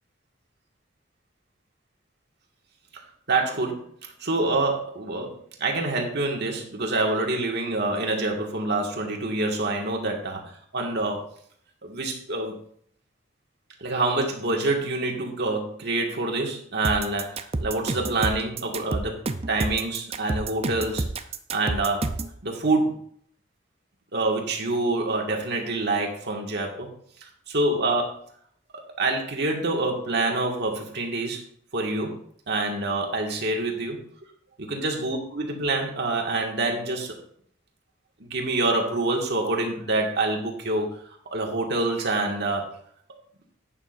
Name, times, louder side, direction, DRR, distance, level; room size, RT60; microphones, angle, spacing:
voice 1, 3.3-10.4 10.7-11.3 11.8-12.6 13.8-21.1 21.5-22.1 22.4-22.9 24.1-26.9 27.2-28.2 29.0-31.4 31.7-32.2 32.5-34.0 34.6-37.2 38.2-41.0 41.3-42.7, right 2 dB, 60° right, 1 dB, 1.9 m, -26 dB
sound 1, 16.8-22.4, right 3 dB, 30° right, 0.6 m, -29 dB
11.5 x 8.8 x 2.6 m, 0.63 s
head